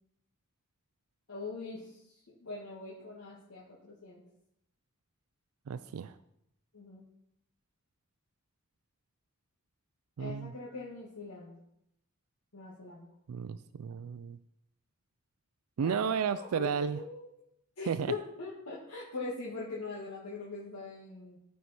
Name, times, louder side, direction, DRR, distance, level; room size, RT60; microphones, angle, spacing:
voice 1, 1.3-2.0 2.3-4.2 6.7-7.0 10.2-11.5 12.5-13.1 15.8-17.3 17.8-21.4, left 3 dB, 85° left, -5 dB, 1.6 m, -42 dB
voice 2, 5.7-6.2 10.2-10.5 13.3-14.4 15.8-17.0 17.9-18.1, right 7 dB, 90° right, 12 dB, 0.4 m, -33 dB
14.0 x 4.7 x 4.2 m, 0.78 s
head